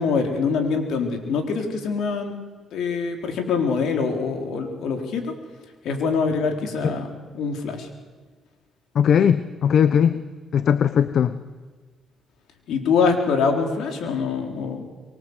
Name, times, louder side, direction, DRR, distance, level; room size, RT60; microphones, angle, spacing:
voice 1, 0.0-2.4 2.7-5.3 5.8-7.1 7.3-7.9 12.7-14.8, left 5 dB, 80° left, 4 dB, 4.1 m, -24 dB
voice 2, 8.9-10.2 10.5-11.3, left 8 dB, 60° left, 13 dB, 0.9 m, -18 dB
25.0 x 23.0 x 8.2 m, 1.4 s
cardioid pair, 90°, 0 cm